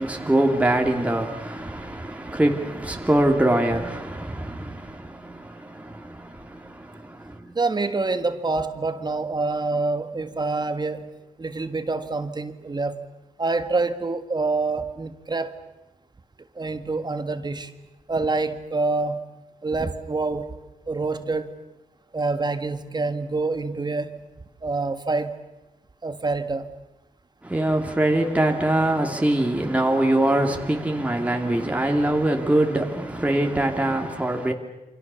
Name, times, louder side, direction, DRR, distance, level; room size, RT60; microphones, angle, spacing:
voice 1, 0.0-7.5 27.4-34.5, right 1 dB, 10° right, 2.8 m, -23 dB
voice 2, 7.6-11.1 11.4-13.0 13.4-15.5 16.6-17.7 18.1-19.3 19.6-20.6 20.9-21.5 22.1-24.3 24.6-25.3 26.0-26.8, right 3 dB, 30° right, 1.7 m, -26 dB
29.0 x 25.5 x 7.1 m
wide cardioid pair, 100°, 13 cm